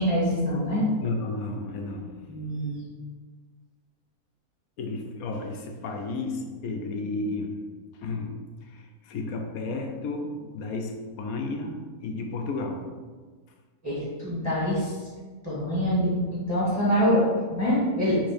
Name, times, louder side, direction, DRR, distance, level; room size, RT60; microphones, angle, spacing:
voice 1, 0.0-0.9 2.3-2.9 13.8-15.0 15.4-18.2, equal, 5° right, -8 dB, 1.8 m, -25 dB
voice 2, 1.0-2.2 4.8-7.6 8.0-12.9, left 3 dB, 75° left, 4 dB, 1.2 m, -33 dB
6.2 x 3.4 x 5.1 m, 1.4 s
omnidirectional pair, 1.6 m